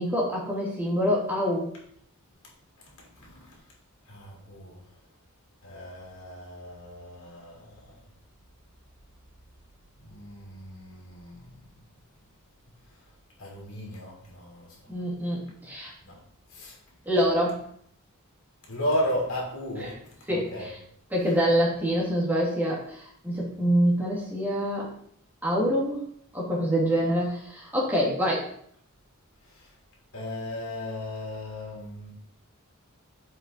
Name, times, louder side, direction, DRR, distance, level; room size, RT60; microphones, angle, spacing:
voice 1, 0.0-1.7 14.9-15.9 17.1-17.6 20.3-20.8 21.1-24.9 25.4-26.0 26.3-28.5, equal, 10° right, 2.3 m, -26 dB
voice 2, 3.1-3.6 4.1-4.9 5.6-7.9 10.0-11.7 13.4-14.8 16.0-16.2 16.5-16.8 18.7-20.7 29.4-29.7 30.1-32.1, left 1 dB, 70° left, 2.8 m, -35 dB
7.9 x 4.6 x 4.0 m
head